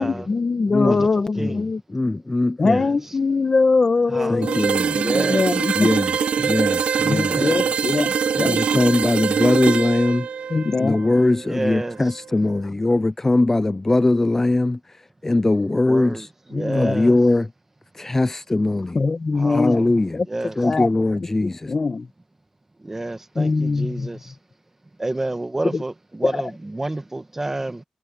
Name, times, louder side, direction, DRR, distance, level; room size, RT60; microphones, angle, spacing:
voice 1, 0.0-1.8 2.6-5.9 7.1-8.6 10.5-11.0 16.5-17.1 18.9-20.2 20.6-22.1 23.3-24.2 25.7-25.8 26.2-26.4, left 4 dB, 35° left, 1.5 m, -22 dB
voice 2, 1.9-2.8 4.3-5.0 5.8-7.5 8.4-10.3 10.8-14.8 15.2-16.3 16.7-17.5 17.9-19.0 19.5-20.2 20.6-21.7, left 2 dB, 15° left, 0.3 m, -21 dB
voice 3, 2.6-3.0 4.1-4.7 5.0-5.5 7.2-7.7 11.5-12.0 15.9-17.1 19.4-19.9 20.3-20.6 22.8-24.3 25.0-27.8, right 2 dB, 15° right, 1.2 m, -29 dB
sound 1, 4.4-12.2, right 7 dB, 75° right, 1.3 m, -24 dB
wide cardioid pair, 150°, 2 cm